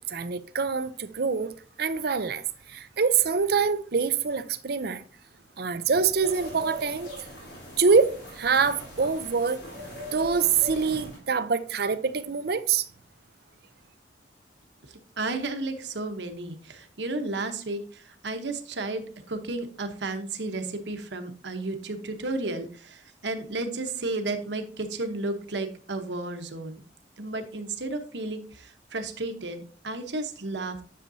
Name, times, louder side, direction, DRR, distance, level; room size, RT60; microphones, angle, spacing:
voice 1, 0.0-1.5 1.8-2.4 2.7-5.0 5.6-7.1 7.8-9.6 10.1-12.9, right 5 dB, 60° right, 0.6 m, -25 dB
sound 1, 6.2-11.2, left 1 dB, 80° left, 3.7 m, -41 dB
voice 2, 14.9-26.8 27.2-30.8, right 2 dB, 75° right, 1.1 m, -33 dB
10.0 x 6.7 x 2.7 m
head